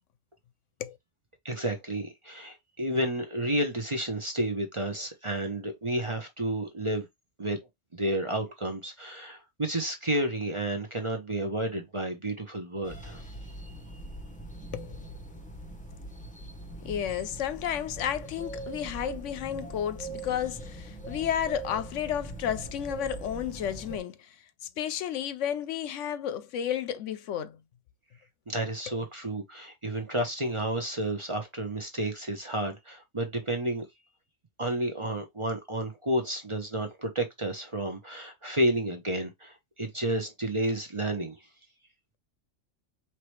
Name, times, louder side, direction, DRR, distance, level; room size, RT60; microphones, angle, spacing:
voice 1, 1.4-7.1 7.4-7.6 7.9-13.2 28.5-33.8 34.6-41.4, right 1 dB, 30° right, 0.8 m, -31 dB
sound 1, 12.8-24.0, right 2 dB, 10° left, 0.7 m, -41 dB
voice 2, 14.7-15.1 16.8-24.4 24.8-27.6 28.9-29.0, left 10 dB, 75° left, 0.9 m, -32 dB
4.7 x 3.0 x 3.1 m
omnidirectional pair, 1.3 m